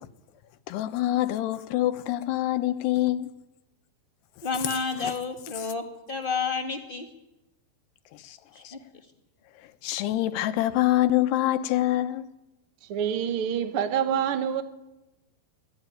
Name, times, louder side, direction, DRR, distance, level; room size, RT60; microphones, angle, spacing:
voice 1, 0.7-3.3 5.0-5.1 5.6-5.7 8.1-8.4 8.6-8.7 9.6-12.3, left 14 dB, 85° left, 3.2 m, -26 dB
voice 2, 4.4-7.1 8.5-8.8, left 5 dB, 30° left, 0.9 m, -30 dB
voice 3, 12.9-14.6, right 8 dB, 85° right, 1.1 m, -26 dB
24.5 x 18.5 x 9.3 m
omnidirectional pair, 4.6 m